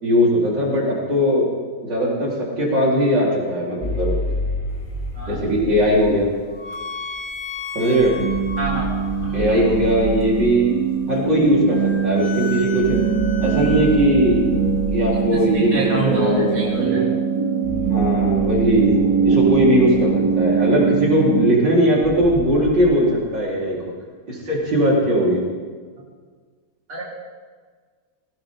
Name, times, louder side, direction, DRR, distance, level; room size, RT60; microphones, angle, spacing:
voice 1, 0.0-1.5 1.8-4.1 5.3-6.3 7.7-8.1 9.3-10.7 11.1-13.0 13.4-14.5 14.9-17.1 17.9-18.9 19.2-23.8 24.3-25.4, equal, 85° right, -6 dB, 5.1 m, -19 dB
sound 1, 3.8-6.1 8.0-10.5 12.8-15.4 17.6-20.2 22.0-22.7, equal, 25° left, 2.7 m, -30 dB
sound 2, 4.7-16.9, left 5 dB, 70° left, 2.6 m, -37 dB
voice 2, 5.1-5.4 8.6-9.6 15.3-17.1 19.3-19.4 26.9-27.0, right 3 dB, 50° right, -5 dB, 3.8 m, -27 dB
sound 3, 8.2-21.5, right 6 dB, 70° right, 2.9 m, -22 dB
20.0 x 18.0 x 3.9 m, 1.5 s
omnidirectional pair, 1.9 m